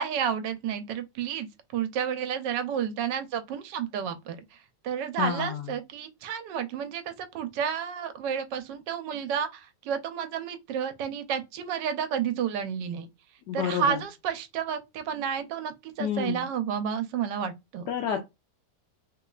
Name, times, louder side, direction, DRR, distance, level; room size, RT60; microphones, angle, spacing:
voice 1, 0.0-1.5 1.7-4.4 4.8-13.1 13.5-17.8, right 8 dB, 80° right, 1.2 m, -31 dB
voice 2, 5.2-5.7 13.5-14.0 16.0-16.5 17.9-18.2, left 8 dB, 75° left, 1.2 m, -29 dB
3.2 x 3.0 x 2.3 m
omnidirectional pair, 2.0 m